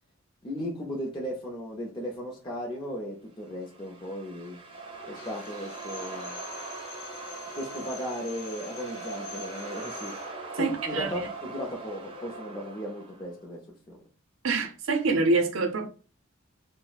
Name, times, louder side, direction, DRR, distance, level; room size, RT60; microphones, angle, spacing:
voice 1, 0.4-4.6 5.1-6.4 7.5-10.2 10.6-14.0, equal, 25° left, 0.5 m, -36 dB
sound 1, 3.5-13.3, right 4 dB, 25° right, 0.5 m, -41 dB
Drill, 5.1-10.4, left 5 dB, 75° left, 0.8 m, -45 dB
voice 2, 10.6-11.1 14.4-15.9, right 3 dB, 70° right, 0.5 m, -26 dB
2.3 x 2.0 x 3.9 m
head